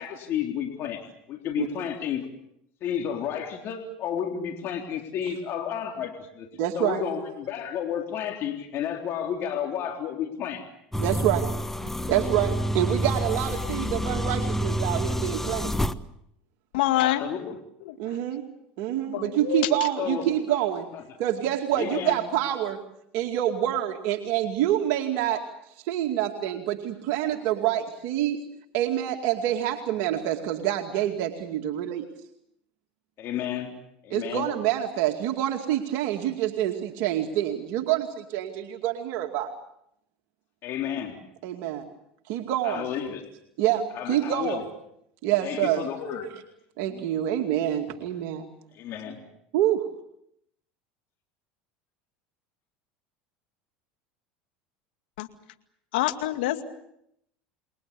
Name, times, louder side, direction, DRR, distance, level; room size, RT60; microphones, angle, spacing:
voice 1, 0.0-2.3 2.8-6.5 6.7-10.7 16.9-17.6 20.0-20.6 20.9-21.0 21.7-22.2 33.2-33.7 34.0-34.5 40.6-41.2 42.6-43.2 43.9-44.6 45.4-46.3 46.9-47.1 48.7-49.2, left 9 dB, 50° left, 3 dB, 3.7 m, -32 dB
voice 2, 6.6-7.0 11.0-11.5 11.8-15.8 18.0-18.4 18.8-20.9 21.2-22.8 23.1-25.4 25.7-28.4 28.7-32.1 34.1-39.5 41.4-41.9 42.3-42.9 43.6-44.6 45.2-45.8 46.8-48.5 49.5-49.9, right 12 dB, 65° right, 4 dB, 2.3 m, -27 dB
sound 1, 10.9-15.9, equal, 5° left, 1.2 m, -28 dB
voice 3, 16.7-17.2 17.9-18.0 19.1-19.7 55.2-55.3 55.9-56.7, left 15 dB, 75° left, 8 dB, 2.2 m, -26 dB
29.0 x 22.0 x 7.1 m, 0.75 s
hypercardioid pair, 90°, 5 cm